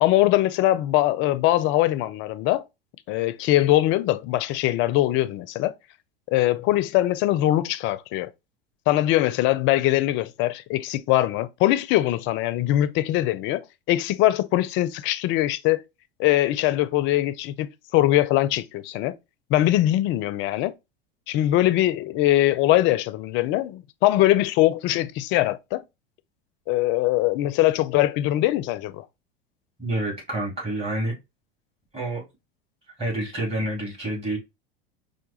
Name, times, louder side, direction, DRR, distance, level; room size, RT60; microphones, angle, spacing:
voice 1, 0.0-2.6 3.1-5.7 6.3-8.3 8.9-13.6 13.9-15.8 16.2-19.2 19.5-20.7 21.3-25.8 26.7-29.0, left 15 dB, 40° left, 0.4 m, -22 dB
voice 2, 29.8-31.1 31.9-32.2 33.0-34.4, right 1 dB, 20° right, 2.5 m, -28 dB
4.5 x 2.2 x 2.9 m
hypercardioid pair, 85°, 29 cm